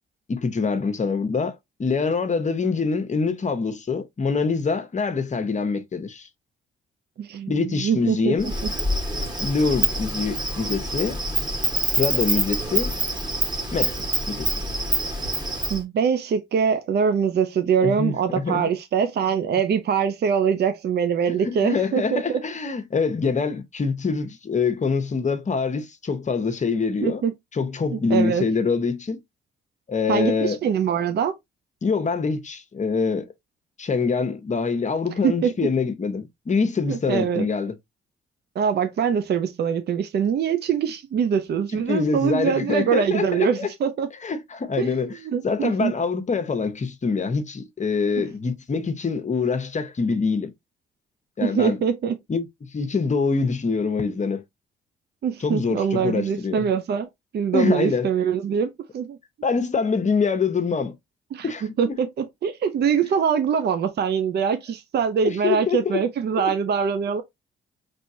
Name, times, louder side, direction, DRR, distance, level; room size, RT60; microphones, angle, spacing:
voice 1, 0.3-6.3 7.5-8.5 9.4-11.2 11.9-12.9 13.7-14.0 14.3-14.6 17.8-18.7 21.4-27.2 27.5-29.2 29.9-30.6 31.8-33.3 33.8-37.7 41.7-43.7 44.2-45.2 45.4-50.5 51.4-51.8 52.3-52.5 52.7-54.4 55.4-56.7 57.5-58.1 59.4-60.9 61.4-61.9 65.2-66.0 66.4-66.5, left 4 dB, 35° left, 1.0 m, -25 dB
voice 2, 7.2-8.7 15.7-22.4 27.0-27.3 27.9-28.4 30.1-31.4 35.2-35.5 36.9-37.5 38.6-44.1 44.8-45.9 48.2-48.3 51.4-52.2 55.2-57.1 57.3-59.2 61.3-61.5 61.8-67.2, right 7 dB, 55° right, 0.6 m, -23 dB
Insect, 8.4-15.8, right 1 dB, 20° right, 1.6 m, -26 dB
4.3 x 3.4 x 2.7 m
supercardioid pair, 60°, 20 cm